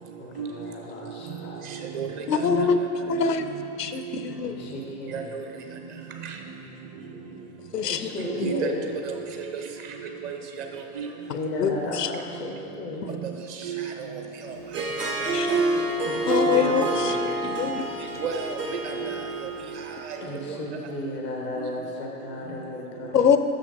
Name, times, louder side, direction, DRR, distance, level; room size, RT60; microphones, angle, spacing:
voice 1, 0.2-1.7 4.4-5.4 7.8-9.0 11.3-13.2 15.3-15.5 16.0-17.2 20.2-23.4, left 2 dB, ahead, -1 dB, 0.3 m, -34 dB
voice 2, 1.7-2.7 3.0-3.3 4.1-4.2 5.1-5.4 6.2-6.4 8.2-8.7 9.0-9.2 10.2-11.1 13.2-13.3 13.6-14.2 14.5-14.6 18.2-18.6 18.8-19.5 20.0-20.6 21.6-21.7, right 7 dB, 30° right, 3 dB, 0.7 m, -32 dB
voice 3, 2.3-2.8 3.1-3.5 3.8-4.6 7.7-8.5 11.3-12.1 15.3-15.6 16.3-17.9 23.1-23.4, left 7 dB, 85° left, 10 dB, 0.5 m, -25 dB
Harp, 14.6-20.0, right 2 dB, 80° right, 0.9 m, -27 dB
6.3 x 6.3 x 5.1 m, 2.7 s
figure-of-eight pair, 95°, 46 cm